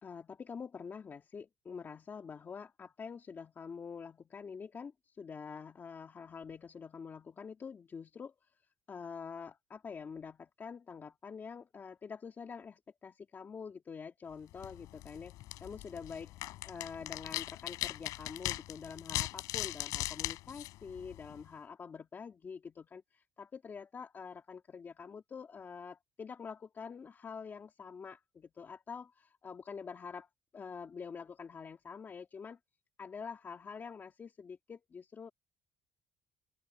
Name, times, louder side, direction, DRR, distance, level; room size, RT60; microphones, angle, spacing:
voice 1, 0.0-8.6 8.9-15.3 15.6-32.6 33.0-35.3, left 6 dB, 35° left, 2.2 m, -46 dB
sound 1, 14.5-21.5, left 17 dB, 80° left, 6.7 m, -40 dB
cardioid pair, 105°, 6 cm